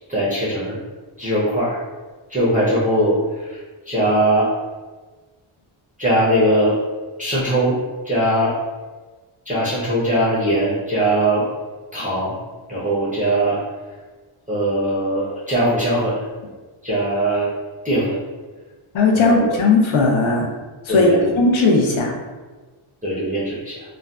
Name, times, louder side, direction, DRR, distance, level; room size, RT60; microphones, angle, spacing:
voice 1, 0.1-0.8 1.2-1.8 2.3-3.6 3.9-4.5 6.0-6.8 7.2-7.8 8.0-8.5 9.5-11.5 11.9-12.3 12.7-13.6 14.5-16.2 16.8-17.5 17.8-18.2 19.1-19.6 20.9-21.3 23.0-23.8, right 1 dB, 15° right, -9 dB, 0.5 m, -20 dB
voice 2, 18.9-20.5 20.9-22.1, left 3 dB, 70° left, 0 dB, 0.6 m, -16 dB
2.6 x 2.1 x 3.3 m, 1.3 s
wide cardioid pair, 180°, 49 cm